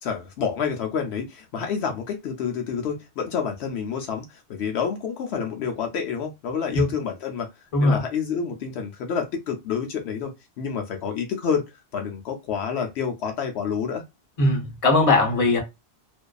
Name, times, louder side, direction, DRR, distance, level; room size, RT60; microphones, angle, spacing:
voice 1, 0.0-7.5 7.8-10.3 10.6-14.0, left 6 dB, 75° left, 0.8 m, -28 dB
voice 2, 14.4-15.6, left 2 dB, 35° left, 0.8 m, -19 dB
2.5 x 2.2 x 2.3 m
omnidirectional pair, 1.1 m